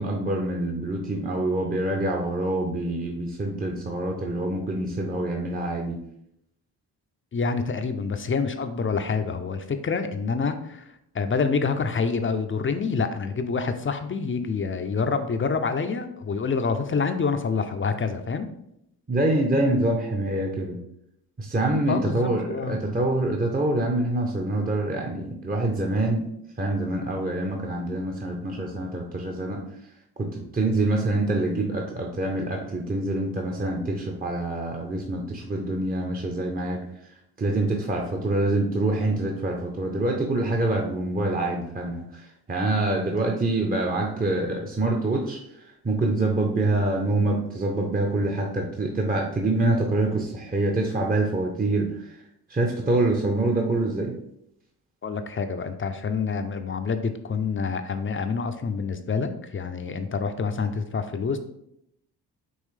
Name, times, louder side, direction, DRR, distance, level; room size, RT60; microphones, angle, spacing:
voice 1, 0.0-6.0 19.1-20.8 21.4-22.4 22.7-26.3 26.6-29.6 30.2-36.8 37.4-45.4 45.8-52.1 52.5-54.1, right 2 dB, 20° right, 1 dB, 0.7 m, -25 dB
voice 2, 7.3-18.5 21.9-22.8 55.0-61.4, left 5 dB, 30° left, 8 dB, 0.5 m, -27 dB
5.4 x 3.0 x 3.3 m, 0.76 s
supercardioid pair, 65°, 42 cm